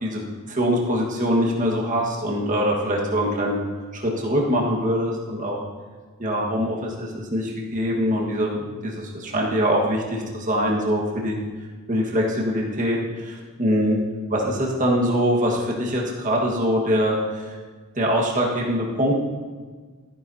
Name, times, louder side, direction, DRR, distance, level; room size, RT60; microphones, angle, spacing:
voice 1, 0.0-3.6 3.9-5.6 6.2-11.4 11.9-14.0 14.3-17.6 17.9-19.1, equal, 35° right, -2 dB, 1.6 m, -23 dB
14.0 x 10.0 x 2.8 m, 1.5 s
head